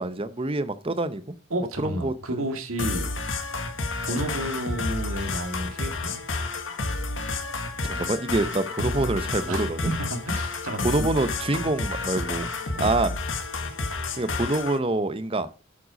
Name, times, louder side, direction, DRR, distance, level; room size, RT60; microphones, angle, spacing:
voice 1, 0.0-1.3 1.8-2.4 7.9-9.9 10.8-12.5 12.8-13.1 14.1-15.5, right 2 dB, 25° right, 0.8 m, -26 dB
voice 2, 1.5-3.1 4.1-6.2 9.0-9.1 9.5-11.1 12.7-13.0, right 1 dB, 85° right, 2.1 m, -31 dB
sound 1, 2.8-14.8, left 3 dB, 60° left, 1.8 m, -30 dB
8.3 x 7.6 x 5.1 m
head